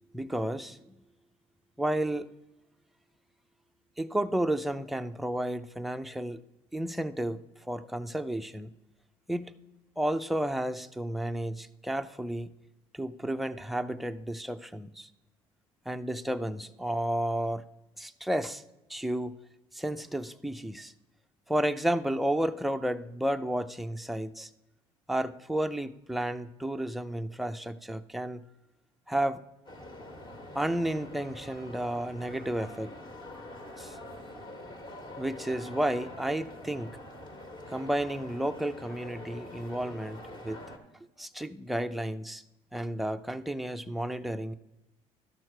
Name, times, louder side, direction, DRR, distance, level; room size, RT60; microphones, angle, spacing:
voice 1, 0.1-0.9 1.8-2.3 4.0-6.4 6.7-8.7 9.3-9.5 10.0-12.5 12.9-15.1 15.9-17.6 18.0-18.6 18.9-19.3 19.7-20.9 21.5-24.5 25.1-28.4 29.1-29.4 30.5-32.9 33.8-34.0 35.2-37.0 37.7-40.6 41.2-42.4 42.7-44.5, right 1 dB, ahead, 8 dB, 0.4 m, -32 dB
sound 1, 29.7-40.8, left 1 dB, 35° left, 1.6 m, -45 dB
12.5 x 6.3 x 4.5 m, 0.99 s
cardioid pair, 125°, 13 cm